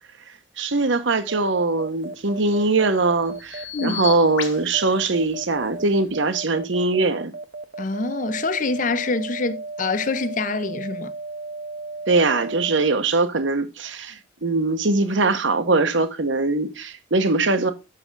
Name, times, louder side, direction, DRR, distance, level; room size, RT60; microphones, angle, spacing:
voice 1, 0.6-7.3 12.1-17.7, right 3 dB, 70° right, 1.0 m, -21 dB
sound 1, 1.3-13.0, right 3 dB, 50° right, 0.7 m, -35 dB
Bird vocalization bird call bird song, 1.9-6.1, left 9 dB, 80° left, 1.3 m, -37 dB
voice 2, 7.8-11.1, left 3 dB, 40° left, 0.6 m, -25 dB
6.7 x 6.1 x 5.3 m
head